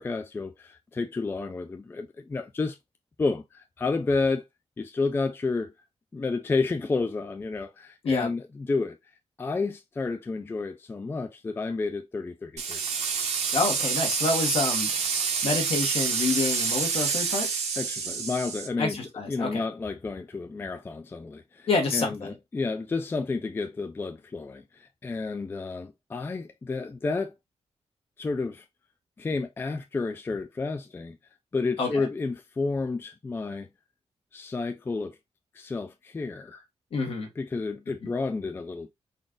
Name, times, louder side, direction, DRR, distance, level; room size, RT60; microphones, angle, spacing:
voice 1, 0.0-2.8 3.2-4.4 4.8-5.7 6.1-9.0 9.4-12.8 17.8-19.0 19.3-27.3 28.2-28.6 29.2-31.2 31.5-33.7 34.3-35.2 35.5-36.6 37.4-38.9, left 3 dB, 20° left, 0.3 m, -31 dB
sound 1, 12.6-18.7, right 6 dB, 85° right, 0.9 m, -28 dB
voice 2, 13.5-17.5 18.8-19.6 21.7-22.3 31.8-32.1 36.9-37.3 38.0-38.1, left 3 dB, 60° left, 1.2 m, -28 dB
4.0 x 2.4 x 3.6 m
wide cardioid pair, 155°, 11 cm